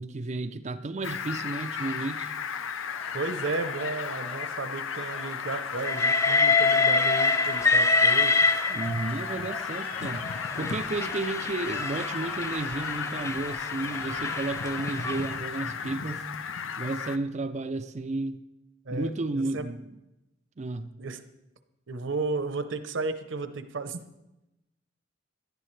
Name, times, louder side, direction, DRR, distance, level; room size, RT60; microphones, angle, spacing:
voice 1, 0.0-2.3 8.7-16.3 16.8-18.4 18.9-19.9 20.6-20.9, right 2 dB, 35° right, 9 dB, 0.5 m, -32 dB
Fowl, 1.0-17.2, left 7 dB, 75° left, 0.6 m, -35 dB
Applause, 2.7-16.3, left 2 dB, 30° left, 1.3 m, -44 dB
voice 2, 3.1-8.4 18.9-19.6 21.0-21.2 21.9-24.0, right 3 dB, 65° right, 10 dB, 0.9 m, -33 dB
Train, 5.8-9.2 10.1-15.3, left 3 dB, 15° left, 0.5 m, -26 dB
17.5 x 11.5 x 3.3 m, 0.93 s
head